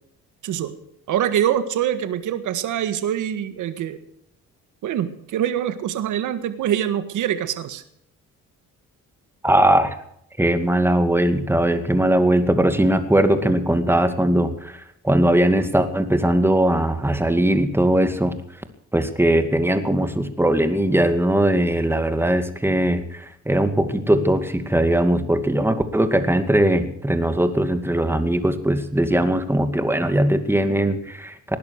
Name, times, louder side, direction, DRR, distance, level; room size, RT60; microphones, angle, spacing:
voice 1, 0.4-0.8 1.1-4.0 4.8-7.8, right 10 dB, 80° right, 11 dB, 1.8 m, -24 dB
voice 2, 9.4-10.0 10.4-18.4 18.9-31.6, right 1 dB, 10° right, 9 dB, 2.3 m, -20 dB
19.5 x 11.0 x 6.5 m, 0.73 s
cardioid pair, 90°, 30 cm